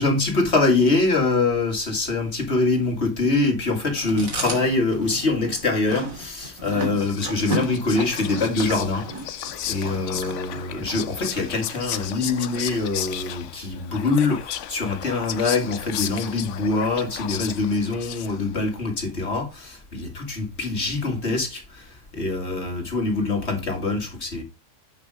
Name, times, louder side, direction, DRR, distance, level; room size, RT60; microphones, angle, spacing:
voice 1, 0.0-9.4 9.7-24.4, left 3 dB, 45° left, 2.7 m, -24 dB
Chewing mastication, 4.0-11.0, right 1 dB, 65° right, 3.3 m, -33 dB
Whispering, 6.6-18.6, left 11 dB, 65° left, 0.9 m, -34 dB
8.2 x 5.9 x 5.0 m
omnidirectional pair, 1.5 m